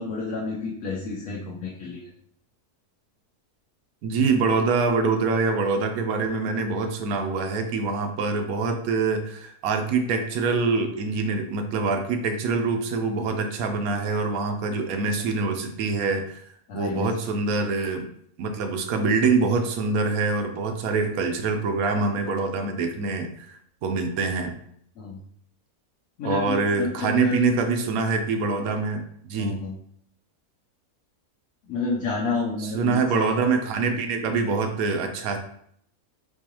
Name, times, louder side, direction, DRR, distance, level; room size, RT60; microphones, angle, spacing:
voice 1, 0.0-2.1 16.7-17.1 25.0-25.2 26.2-27.4 29.3-29.8 31.7-33.2, left 3 dB, 65° left, -3 dB, 1.0 m, -30 dB
voice 2, 4.0-16.4 16.7-18.1 18.4-24.5 26.2-29.6 32.6-35.4, right 4 dB, 70° right, 5 dB, 1.0 m, -25 dB
4.5 x 2.4 x 2.9 m, 0.67 s
omnidirectional pair, 1.7 m